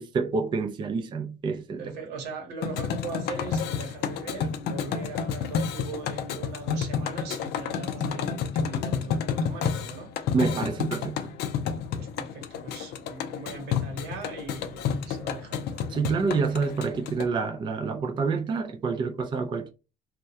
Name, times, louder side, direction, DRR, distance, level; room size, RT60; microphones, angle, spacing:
voice 1, 0.0-2.0 10.3-11.3 15.9-19.7, right 4 dB, 30° right, 0.3 m, -28 dB
voice 2, 1.8-10.1 12.0-15.9, right 4 dB, 85° right, 0.9 m, -40 dB
sound 1, 2.6-17.3, left 7 dB, 75° left, 0.4 m, -30 dB
2.2 x 2.1 x 2.7 m
cardioid pair, 110°, 17 cm